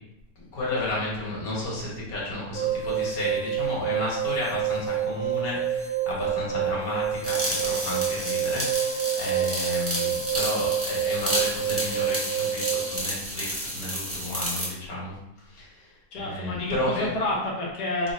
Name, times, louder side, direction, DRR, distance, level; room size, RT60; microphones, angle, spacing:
voice 1, 0.5-17.1, left 1 dB, 65° left, -5 dB, 1.6 m, -32 dB
sound 1, 2.5-13.0, right 9 dB, 60° right, 0.8 m, -28 dB
sound 2, 7.2-14.7, equal, 10° right, 0.7 m, -31 dB
voice 2, 16.1-18.1, left 2 dB, 85° left, -2 dB, 1.5 m, -29 dB
3.7 x 2.4 x 4.1 m, 0.86 s
omnidirectional pair, 1.7 m